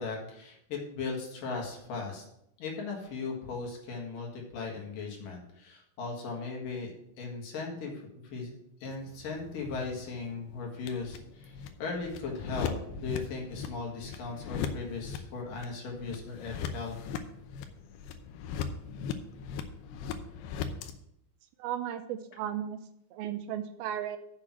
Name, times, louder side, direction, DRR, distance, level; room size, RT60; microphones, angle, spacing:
voice 1, 0.0-2.2 2.6-17.0, left 4 dB, 60° left, 0 dB, 3.1 m, -38 dB
sound 1, 8.9-20.9, left 7 dB, 85° left, 2.8 m, -39 dB
voice 2, 21.6-22.8 23.1-24.2, right 10 dB, 80° right, 10 dB, 2.3 m, -35 dB
7.4 x 6.7 x 7.2 m, 0.76 s
omnidirectional pair, 4.6 m